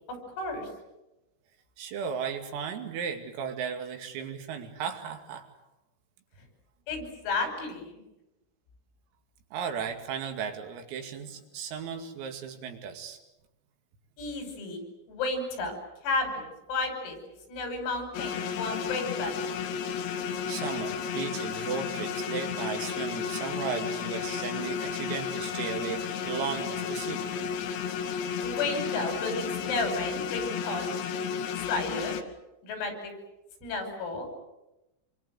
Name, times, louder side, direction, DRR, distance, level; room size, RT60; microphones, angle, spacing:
voice 1, 0.4-0.7 6.9-8.0 14.2-14.8 15.1-15.8 16.0-17.2 17.5-19.4 28.4-30.8 31.7-32.1 32.6-33.1 33.6-34.3, left 3 dB, 85° left, 5 dB, 8.4 m, -32 dB
voice 2, 1.8-5.5 9.5-13.2 20.5-27.2, right 7 dB, 80° right, 4 dB, 5.1 m, -35 dB
sound 1, 18.1-32.2, left 7 dB, 65° left, 3.4 m, -33 dB
27.0 x 24.0 x 7.9 m, 0.96 s
omnidirectional pair, 6.0 m